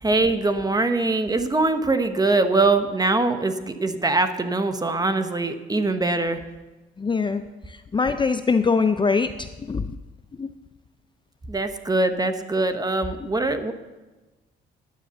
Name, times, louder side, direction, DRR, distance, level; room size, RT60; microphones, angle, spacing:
voice 1, 0.0-6.4 11.5-13.7, right 2 dB, 20° right, 9 dB, 1.1 m, -22 dB
voice 2, 7.0-7.4 7.9-9.9 10.4-10.5, left 4 dB, 25° left, 10 dB, 0.5 m, -22 dB
10.5 x 9.5 x 7.0 m, 1.2 s
cardioid pair, 90°, 20 cm